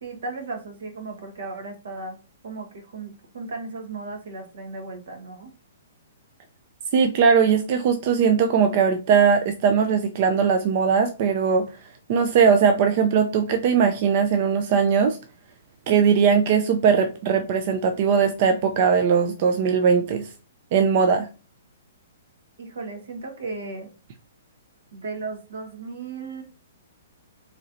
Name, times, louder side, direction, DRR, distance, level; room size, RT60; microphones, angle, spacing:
voice 1, 0.0-2.2 2.4-5.5 22.6-23.9 24.9-26.4, right 3 dB, 65° right, 4 dB, 1.2 m, -35 dB
voice 2, 6.9-11.7 12.1-15.2 15.9-20.3 20.7-21.3, right 6 dB, 35° right, 7 dB, 0.3 m, -20 dB
4.1 x 3.0 x 2.5 m, 0.34 s
hypercardioid pair, 175°, 0 cm